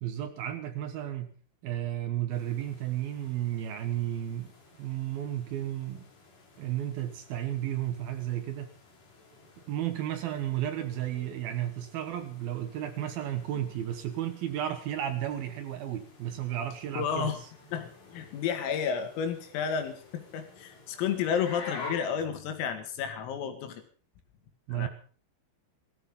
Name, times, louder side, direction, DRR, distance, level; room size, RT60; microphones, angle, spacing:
voice 1, 0.0-1.4 1.6-4.5 4.8-6.1 6.6-8.7 9.7-17.3 24.7-24.9, right 12 dB, 70° right, 8 dB, 2.3 m, -33 dB
sound 1, 2.3-21.9, left 3 dB, 55° left, 8.0 m, -51 dB
voice 2, 17.0-17.4 17.7-23.8 24.7-24.9, left 7 dB, 80° left, 7 dB, 4.8 m, -31 dB
17.0 x 14.5 x 5.4 m, 0.41 s
omnidirectional pair, 5.9 m